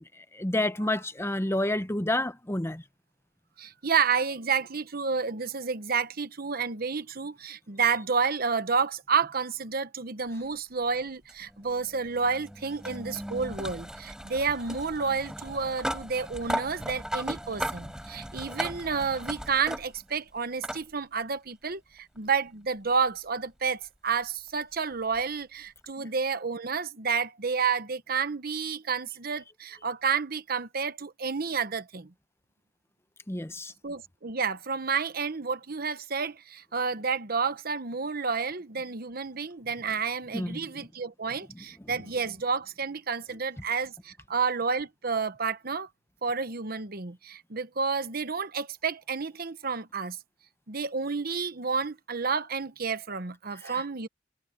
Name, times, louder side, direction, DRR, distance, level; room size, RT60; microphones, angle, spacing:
voice 1, 0.3-2.8 33.3-33.7 40.3-40.7 53.6-53.8, left 1 dB, 15° left, 0.9 m, -29 dB
voice 2, 3.6-32.1 33.8-45.9 46.2-50.2 50.7-54.1, right 5 dB, 55° right, 1.1 m, -30 dB
sound 1, 11.3-20.2 20.6-20.8 22.2-22.3 25.1-25.2, equal, 5° right, 6.7 m, -37 dB
head